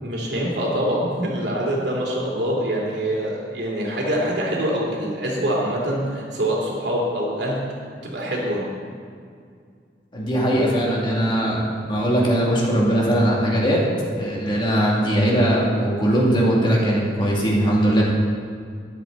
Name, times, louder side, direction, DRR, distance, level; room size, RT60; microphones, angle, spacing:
voice 1, 0.0-7.6 8.1-8.6, equal, 70° right, -3 dB, 3.1 m, -24 dB
voice 2, 10.1-13.8 14.1-18.0, right 1 dB, 30° left, -4 dB, 2.4 m, -20 dB
13.0 x 11.0 x 4.0 m, 2.2 s
head